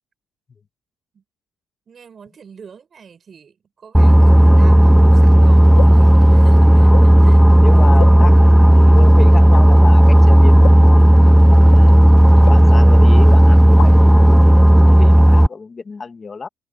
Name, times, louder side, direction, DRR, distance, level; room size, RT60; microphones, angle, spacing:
voice 1, 1.9-7.4 7.7-7.9 12.2-13.0, right 6 dB, 35° right, 5.7 m, -44 dB
Boat Water vehicle, 3.9-15.5, equal, 5° right, 0.5 m, -9 dB
sound 1, 6.9-7.1 8.0-8.5 8.9-9.1 9.5-9.6 10.6-10.9 11.7-11.9 12.4-13.0 13.3-13.4 13.7-14.1, left 14 dB, 80° left, 4.5 m, -31 dB
voice 2, 7.4-12.0 12.5-16.5, left 4 dB, 25° left, 1.8 m, -31 dB
cardioid pair, 135°, 0 cm